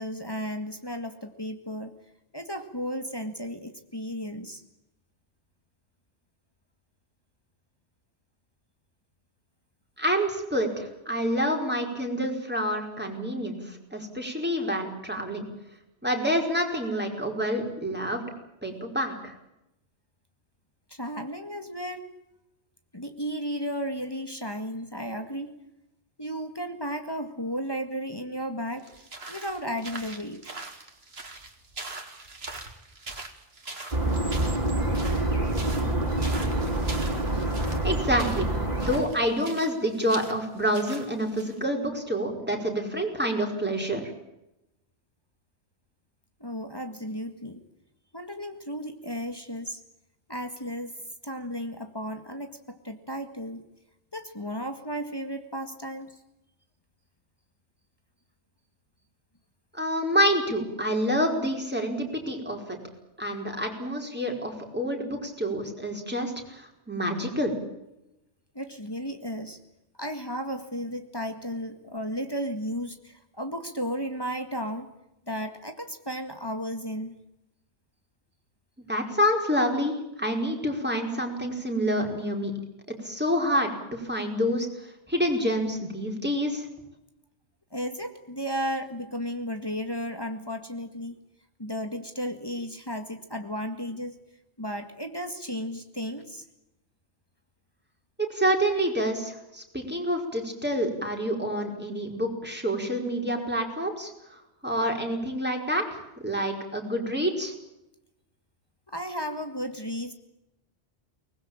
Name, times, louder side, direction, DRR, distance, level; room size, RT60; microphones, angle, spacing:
voice 1, 0.0-1.9 2.3-4.6 20.9-22.1 22.9-25.5 26.2-28.9 29.3-30.5 46.4-47.6 48.1-49.8 50.3-50.9 51.2-53.6 54.1-56.2 68.5-69.6 69.9-74.9 75.3-77.2 87.7-91.2 91.6-94.2 94.6-96.4 108.9-110.1, equal, 20° left, 6 dB, 1.9 m, -34 dB
voice 2, 10.0-15.4 16.0-18.2 18.6-19.3 37.8-38.5 38.8-44.1 59.7-62.8 63.2-67.5 78.9-82.5 82.9-86.7 98.2-107.5, equal, 10° right, 2 dB, 5.1 m, -28 dB
sound 1, 28.8-41.6, right 3 dB, 60° right, 2.8 m, -42 dB
sound 2, 33.9-39.0, right 1 dB, 35° right, 4.1 m, -26 dB
23.5 x 20.5 x 8.9 m, 0.88 s
omnidirectional pair, 1.2 m